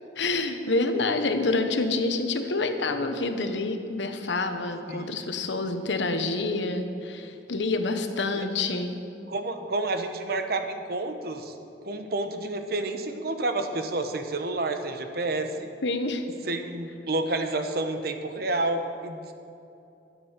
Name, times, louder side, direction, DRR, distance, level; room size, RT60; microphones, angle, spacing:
voice 1, 0.2-8.9 15.8-16.2, left 3 dB, 90° left, 7 dB, 1.1 m, -27 dB
voice 2, 4.9-5.3 8.4-8.5 9.3-11.6 11.8-15.7 16.5-19.3, right 2 dB, 60° right, 7 dB, 1.0 m, -30 dB
12.0 x 9.3 x 6.6 m, 2.7 s
head